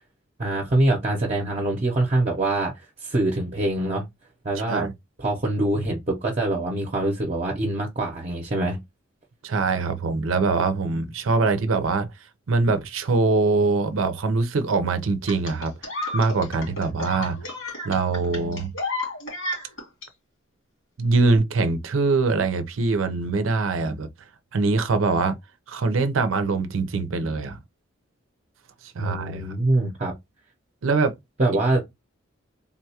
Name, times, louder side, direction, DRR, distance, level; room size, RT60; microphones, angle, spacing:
voice 1, 0.4-4.0 4.4-4.9 5.2-8.8 29.0-30.1 31.4-31.8, right 2 dB, 35° right, 0.7 m, -24 dB
voice 2, 9.4-12.1 12.5-15.7 16.1-17.4 17.8-18.7 21.0-24.1 24.5-25.4 25.7-27.6 28.8-29.5 30.8-31.1, right 3 dB, 80° right, 0.5 m, -23 dB
sound 1, 15.3-20.1 21.3-21.4, left 2 dB, 80° left, 2.3 m, -32 dB
3.7 x 2.3 x 2.8 m
head